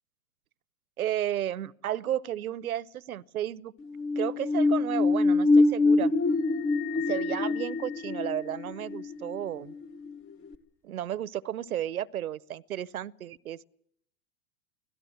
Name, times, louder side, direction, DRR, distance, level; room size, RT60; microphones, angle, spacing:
voice 1, 1.0-3.7 4.2-6.1 6.9-9.7 10.8-13.7, right 11 dB, 85° right, 0.8 m, -33 dB
sound 1, 3.8-10.2 10.5-10.6, left 3 dB, 30° left, 1.5 m, -25 dB
sound 2, 6.3-9.0, left 23 dB, 5° left, 1.0 m, -44 dB
24.0 x 17.0 x 7.7 m
hypercardioid pair, 110°, 42 cm